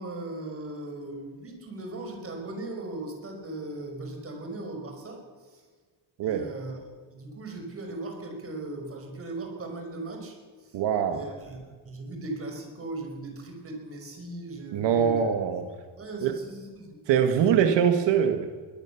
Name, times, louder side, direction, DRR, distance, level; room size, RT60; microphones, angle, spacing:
voice 1, 0.0-5.6 6.2-6.8 7.1-10.8 11.1-15.2 16.0-17.0 17.3-17.5, right 2 dB, 30° right, 4 dB, 5.4 m, -38 dB
voice 2, 10.7-11.2 14.7-15.6 16.2-16.3 17.1-18.5, right 8 dB, 75° right, 6 dB, 1.7 m, -23 dB
23.0 x 18.5 x 7.1 m, 1.5 s
cardioid pair, 150°, 43 cm